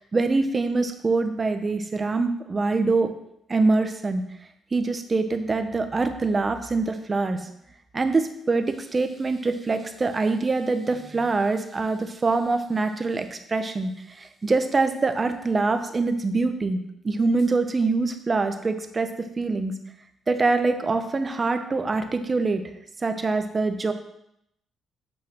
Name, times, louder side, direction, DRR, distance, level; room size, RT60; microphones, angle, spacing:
voice 1, 0.1-3.1 3.5-4.2 4.7-7.4 7.9-13.9 14.2-16.8 17.0-19.1 19.4-19.7 20.3-22.6 23.0-23.9, right 3 dB, 30° right, 8 dB, 0.9 m, -24 dB
8.6 x 4.0 x 6.5 m, 0.76 s
cardioid pair, 90°, 0 cm